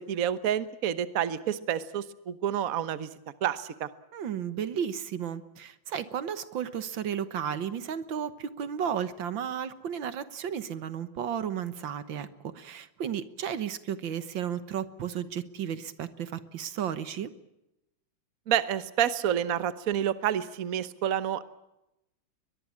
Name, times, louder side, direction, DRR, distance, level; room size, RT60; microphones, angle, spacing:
voice 1, 0.0-3.1 3.4-3.9 18.5-21.4, right 9 dB, 50° right, 13 dB, 1.4 m, -29 dB
voice 2, 4.1-17.3, right 8 dB, 75° right, 13 dB, 1.9 m, -33 dB
22.5 x 21.5 x 8.6 m, 0.89 s
omnidirectional pair, 2.1 m